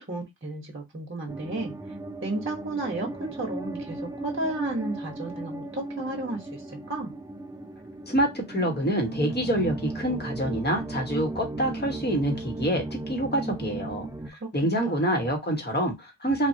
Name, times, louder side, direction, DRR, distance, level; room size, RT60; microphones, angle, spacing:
voice 1, 0.0-1.7 2.2-7.1 14.4-14.5 14.8-15.3, right 2 dB, 25° right, 1.1 m, -33 dB
sound 1, 1.3-14.3, right 2 dB, 10° right, 0.5 m, -36 dB
voice 2, 8.1-16.5, right 1 dB, 25° left, 1.3 m, -27 dB
2.8 x 2.4 x 2.8 m
cardioid pair, 50°, 43 cm